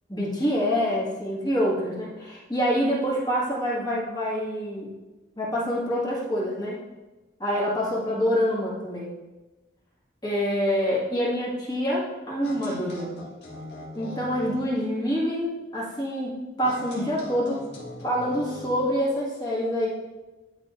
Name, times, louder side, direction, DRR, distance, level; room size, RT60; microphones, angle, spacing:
voice 1, 0.1-4.9 5.3-6.8 7.4-9.1 10.2-13.2 13.9-16.3 16.6-17.6 18.0-19.9, equal, 20° left, -6 dB, 1.6 m, -26 dB
sound 1, 12.4-14.7 16.6-18.9, left 2 dB, 60° left, 1.5 m, -40 dB
11.0 x 4.2 x 2.5 m, 1.1 s
head